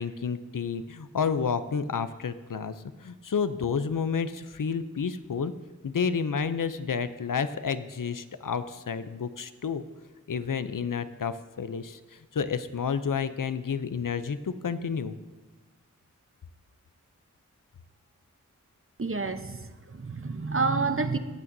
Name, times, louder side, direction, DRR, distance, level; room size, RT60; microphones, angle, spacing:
voice 1, 0.0-2.7 3.0-5.5 5.8-9.8 10.3-15.1, left 6 dB, 75° left, 12 dB, 0.6 m, -30 dB
voice 2, 19.0-21.2, right 4 dB, 40° right, 10 dB, 0.8 m, -29 dB
20.0 x 8.6 x 2.7 m, 1.2 s
wide cardioid pair, 40°, 32 cm